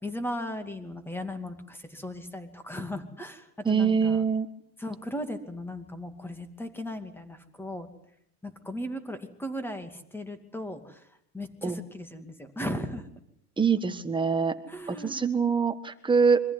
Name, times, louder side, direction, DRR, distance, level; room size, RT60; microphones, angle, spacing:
voice 1, 0.0-4.2 4.8-7.9 8.4-11.0 11.3-13.1 14.7-15.3, left 1 dB, 5° left, 9 dB, 2.5 m, -37 dB
voice 2, 3.6-4.5 11.6-11.8 13.6-14.6 14.9-16.4, right 5 dB, 10° right, 9 dB, 1.5 m, -24 dB
25.0 x 15.0 x 9.8 m, 0.74 s
supercardioid pair, 135°, 44 cm